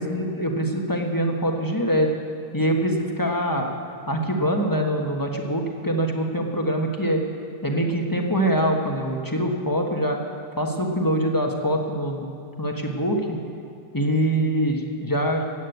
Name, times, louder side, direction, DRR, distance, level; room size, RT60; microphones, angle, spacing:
voice 1, 0.0-2.1 2.5-3.7 4.1-7.2 7.6-10.2 10.5-12.2 12.6-13.4 13.9-15.4, equal, 15° left, 1 dB, 1.1 m, -24 dB
16.0 x 8.9 x 7.9 m, 2.3 s
omnidirectional pair, 1.7 m